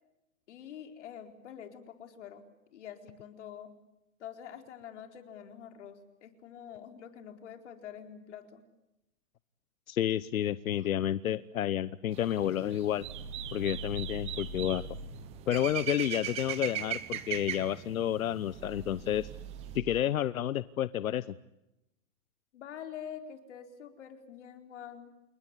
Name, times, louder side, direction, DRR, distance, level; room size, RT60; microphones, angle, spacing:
voice 1, 0.5-2.4 2.7-3.7 4.2-8.6 10.8-10.9 22.5-25.1, left 9 dB, 55° left, 5 dB, 4.4 m, -46 dB
voice 2, 9.9-13.0 13.5-14.8 15.5-19.3 19.7-21.3, left 11 dB, 90° left, 16 dB, 1.0 m, -30 dB
sound 1, 12.1-19.8, right 11 dB, 15° right, 1.0 m, -40 dB
sound 2, 13.0-15.1 18.5-20.0, right 3 dB, 75° right, 7.5 m, -43 dB
29.5 x 19.5 x 9.8 m, 0.91 s
hypercardioid pair, 165°, 41 cm